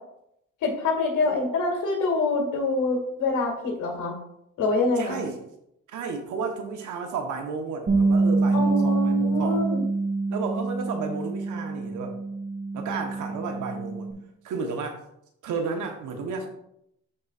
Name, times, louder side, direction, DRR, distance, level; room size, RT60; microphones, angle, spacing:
voice 1, 0.6-4.2 4.6-5.3 8.5-9.8, left 3 dB, 80° left, 0 dB, 2.1 m, -25 dB
voice 2, 5.0-5.4 5.9-9.6 10.3-12.2 12.7-14.1 14.4-15.0 15.4-16.5, right 5 dB, 80° right, 4 dB, 1.2 m, -32 dB
Bass guitar, 7.9-14.1, right 3 dB, 35° right, 1.8 m, -25 dB
11.5 x 4.0 x 2.5 m, 0.78 s
cardioid pair, 90°, 30 cm